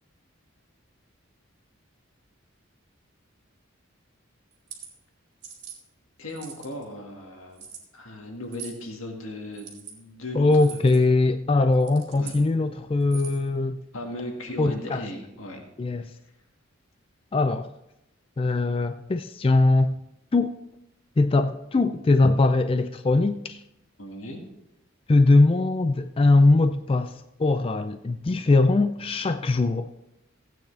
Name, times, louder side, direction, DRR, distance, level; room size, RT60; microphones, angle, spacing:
sound 1, 4.5-4.9 5.4-5.8 6.3-6.8 7.6-7.8 8.5-8.8 9.5-9.9 10.5-11.0 11.7-12.4 13.0-13.5, right 7 dB, 55° right, 2.8 m, -42 dB
voice 1, 6.2-7.7 7.9-10.8 12.1-12.3 13.9-15.6 24.0-24.4, left 1 dB, 90° left, 2 dB, 2.0 m, -37 dB
voice 2, 10.3-13.8 14.6-15.0 15.8-16.1 17.3-17.7 18.4-19.9 20.3-20.5 21.2-23.6 25.1-29.9, left 2 dB, 25° left, 9 dB, 0.3 m, -21 dB
15.5 x 9.1 x 3.3 m, 0.87 s
head